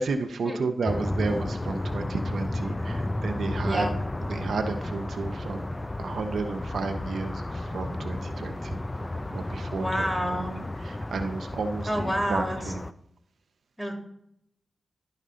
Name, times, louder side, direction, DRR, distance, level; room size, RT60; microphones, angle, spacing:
voice 1, 0.0-3.9 4.2-5.7 6.0-8.8 9.3-10.4 10.8-12.8, right 4 dB, 75° right, 6 dB, 0.7 m, -32 dB
sound 1, 0.9-12.9, left 1 dB, 25° left, 0.4 m, -32 dB
voice 2, 9.7-10.5 11.9-12.6 13.8-13.9, equal, ahead, 2 dB, 2.4 m, -28 dB
11.0 x 5.4 x 3.7 m, 0.72 s
cardioid pair, 45°, 0 cm